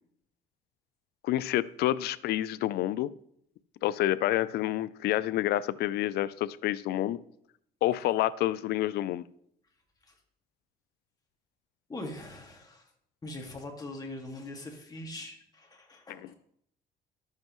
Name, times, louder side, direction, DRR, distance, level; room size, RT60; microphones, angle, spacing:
voice 1, 1.2-3.1 3.8-7.2 7.8-9.2 16.1-16.3, left 14 dB, 75° left, 18 dB, 0.4 m, -28 dB
voice 2, 11.9-12.9 13.2-16.3, left 1 dB, 20° left, 2 dB, 2.0 m, -42 dB
12.0 x 7.5 x 3.1 m, 0.71 s
cardioid pair, 110°, 17 cm